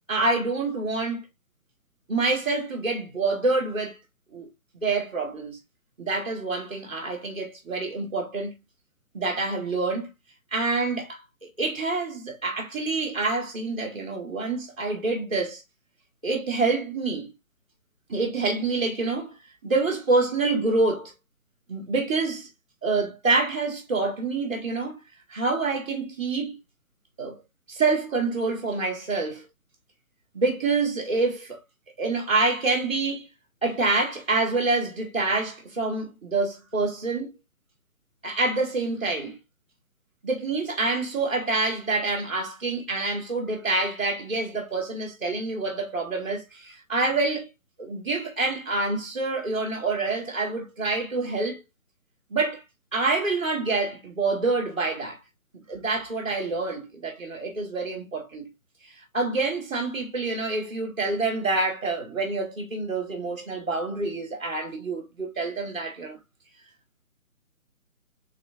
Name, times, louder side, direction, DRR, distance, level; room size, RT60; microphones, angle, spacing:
voice 1, 0.1-1.2 2.1-4.0 4.3-4.5 4.8-5.6 6.0-8.5 9.1-10.1 10.5-15.6 16.2-17.3 18.1-19.3 19.6-21.1 21.7-22.5 22.8-25.0 25.3-26.5 27.2-27.4 27.7-29.4 30.3-31.6 32.0-33.2 33.6-37.3 38.2-39.4 40.2-47.5 47.8-51.6 52.3-52.6 52.9-55.2 55.7-58.5 59.1-66.2, right 3 dB, 5° left, 0.9 m, -27 dB
3.8 x 3.2 x 3.5 m
hypercardioid pair, 175°, 42 cm